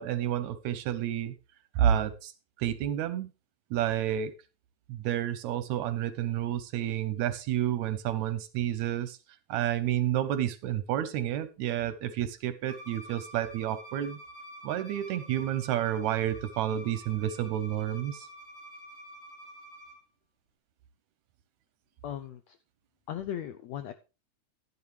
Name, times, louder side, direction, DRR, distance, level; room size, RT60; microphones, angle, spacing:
voice 1, 0.0-1.3 1.8-2.3 2.6-3.3 3.7-4.3 4.9-9.2 9.5-14.2 14.6-18.3, right 11 dB, 80° right, 13 dB, 1.7 m, -30 dB
Bowed string instrument, 12.7-20.0, right 1 dB, 50° left, 3.3 m, -48 dB
voice 2, 22.0-22.6 23.1-23.9, left 10 dB, 80° left, 10 dB, 1.5 m, -37 dB
11.0 x 11.0 x 3.3 m, 0.30 s
omnidirectional pair, 3.8 m